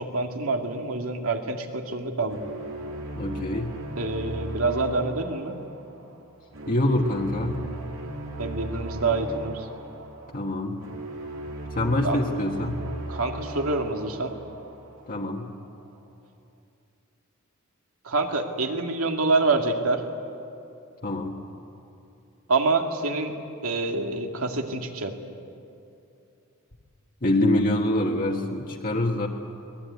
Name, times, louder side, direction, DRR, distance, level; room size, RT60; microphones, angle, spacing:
voice 1, 0.0-2.4 4.0-5.6 8.4-9.6 12.0-12.2 13.1-14.3 18.0-20.0 22.5-23.3 23.6-25.1, right 3 dB, 90° right, 4 dB, 2.2 m, -26 dB
sound 1, 2.3-15.4, right 2 dB, 70° right, 2.7 m, -37 dB
voice 2, 3.1-3.8 6.7-7.7 10.3-10.8 11.7-12.8 15.1-15.5 21.0-21.4 27.2-29.3, left 1 dB, 40° left, 0 dB, 1.5 m, -25 dB
24.0 x 19.5 x 9.5 m, 2.7 s
head